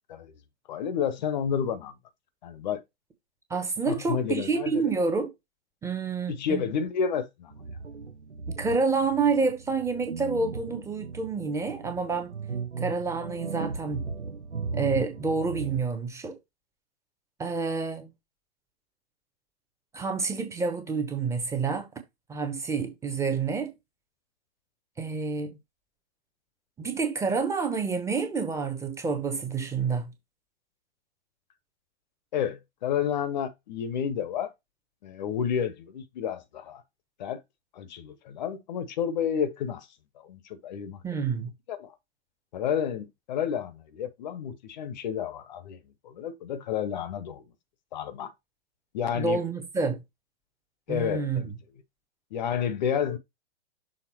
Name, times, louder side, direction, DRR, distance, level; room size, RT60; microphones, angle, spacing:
voice 1, 0.7-1.9 2.4-2.8 3.9-4.9 6.3-7.5 32.3-34.5 35.0-36.8 37.2-37.4 37.7-39.9 40.2-41.0 41.7-41.9 42.5-45.8 46.0-47.4 47.9-48.3 48.9-49.4 50.9-51.5 52.3-53.2, left 8 dB, 40° left, 0.8 m, -30 dB
voice 2, 3.5-5.3 5.8-6.6 8.6-12.3 12.8-14.1 14.7-16.4 17.4-18.1 19.9-21.9 22.3-23.7 25.0-25.6 26.8-30.1 41.0-41.5 49.1-50.0 50.9-51.4, right 4 dB, 10° right, 0.9 m, -28 dB
sound 1, 7.5-15.8, right 5 dB, 85° right, 0.7 m, -37 dB
6.5 x 3.7 x 4.3 m
figure-of-eight pair, 110°, 34 cm